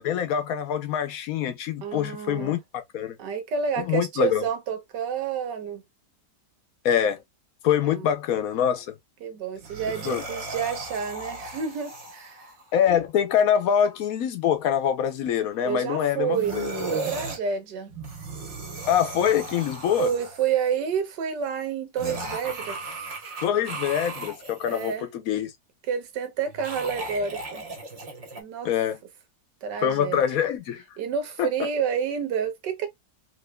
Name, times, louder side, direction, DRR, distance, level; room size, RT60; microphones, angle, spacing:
voice 1, 0.0-3.2 3.8-4.4 6.8-7.2 7.6-8.9 10.0-10.2 12.7-16.6 18.9-20.1 23.4-25.5 28.6-29.0 29.8-30.8 31.4-31.5, left 9 dB, 65° left, 1.0 m, -24 dB
voice 2, 1.8-2.6 3.2-5.8 7.9-8.1 9.2-12.5 15.6-16.6 16.9-17.9 20.0-23.1 24.7-25.1 25.9-27.6 28.4-28.7 29.6-30.2 31.0-32.9, right 7 dB, 85° right, 1.5 m, -29 dB
sound 1, 9.6-12.6 16.3-17.4 17.9-20.7 22.0-24.9 26.5-28.4, right 2 dB, 45° right, 1.3 m, -36 dB
3.7 x 2.9 x 2.2 m
omnidirectional pair, 1.8 m